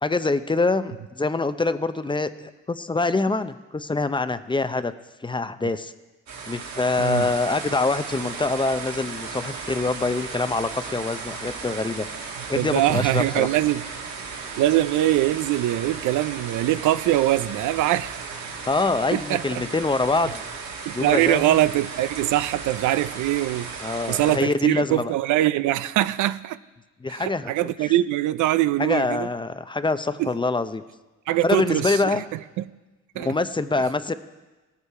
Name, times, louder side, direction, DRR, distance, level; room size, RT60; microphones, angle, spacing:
voice 1, 0.0-4.9 5.2-5.9 6.5-12.1 12.5-13.5 18.6-20.4 20.9-21.6 23.8-25.1 27.0-27.9 28.8-30.8 31.4-32.2 33.2-34.1, left 3 dB, 15° left, 0.6 m, -25 dB
sound 1, 6.3-24.4, right 5 dB, 65° right, 1.9 m, -35 dB
voice 2, 7.0-7.3 12.6-13.8 14.6-18.3 19.1-19.6 20.9-23.7 24.1-26.6 27.1-29.3 30.2-30.3 31.3-32.6 33.2-33.3, right 14 dB, 80° right, 0.5 m, -23 dB
18.0 x 8.4 x 4.8 m
cardioid pair, 90°, 30 cm